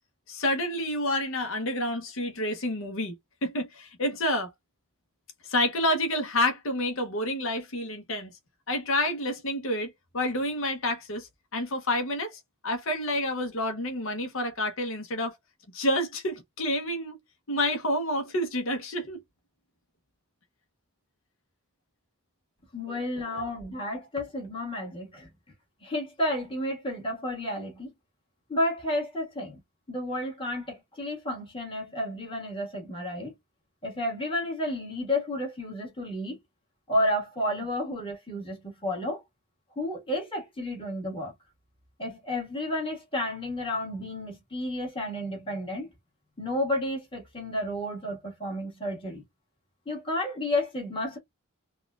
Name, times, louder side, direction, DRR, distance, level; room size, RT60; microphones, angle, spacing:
voice 1, 0.3-3.1 3.4-4.5 5.4-8.3 8.7-15.4 15.7-17.2 17.5-19.2 22.9-23.5, left 1 dB, 65° left, 0.9 m, -29 dB
voice 2, 22.7-25.3 25.8-27.9 28.5-29.6 29.9-33.3 33.8-36.4 36.9-39.2 39.7-41.3 42.0-45.9 46.4-49.2 49.8-51.2, left 1 dB, 25° left, 1.7 m, -31 dB
4.1 x 2.4 x 2.4 m
head